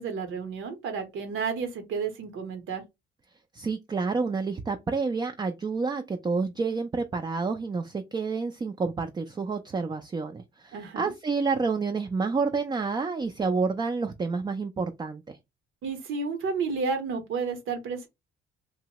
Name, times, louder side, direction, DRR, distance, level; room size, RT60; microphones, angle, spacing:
voice 1, 0.0-2.8 10.7-11.1 15.8-18.1, right 5 dB, 75° right, 0.9 m, -31 dB
voice 2, 3.5-15.4, right 4 dB, 20° right, 0.4 m, -29 dB
2.8 x 2.1 x 2.9 m
cardioid pair, 90°, 20 cm